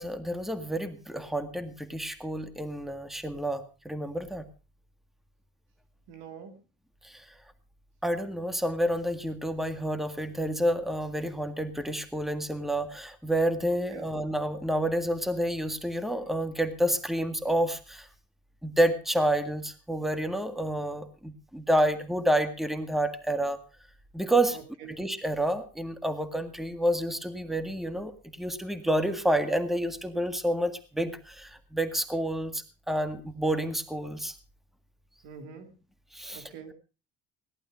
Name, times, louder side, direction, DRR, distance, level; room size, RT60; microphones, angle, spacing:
voice 1, 0.0-4.5 7.0-7.2 8.0-18.1 18.6-23.6 24.1-24.6 24.9-34.4 36.1-36.4, right 1 dB, ahead, 10 dB, 1.8 m, -29 dB
voice 2, 6.1-6.6 13.9-14.1 24.5-25.0 35.2-35.7 36.3-36.7, right 7 dB, 85° right, 8 dB, 2.8 m, -44 dB
18.0 x 11.5 x 5.1 m, 0.35 s
supercardioid pair, 90°, 39 cm